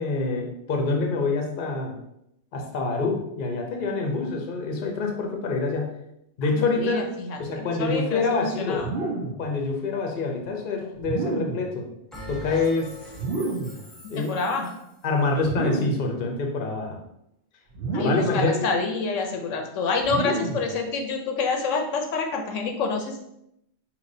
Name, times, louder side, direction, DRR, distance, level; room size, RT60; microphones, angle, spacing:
voice 1, 0.0-1.9 2.5-5.9 6.4-7.0 7.4-8.8 9.4-11.8 12.3-12.9 14.1-14.5 15.0-17.0 18.0-18.7, left 3 dB, 50° left, 2 dB, 0.8 m, -26 dB
voice 2, 6.5-8.9 14.2-14.7 17.9-23.2, left 4 dB, 80° left, 3 dB, 1.0 m, -27 dB
sound 1, 8.8-9.5 11.0-11.7 13.1-13.8 15.4-16.1 17.7-18.5 20.0-20.7, right 3 dB, 55° right, 0.9 m, -29 dB
Bell, 12.1-14.9, left 1 dB, ahead, 0.7 m, -42 dB
5.0 x 2.9 x 2.6 m, 0.80 s
omnidirectional pair, 1.3 m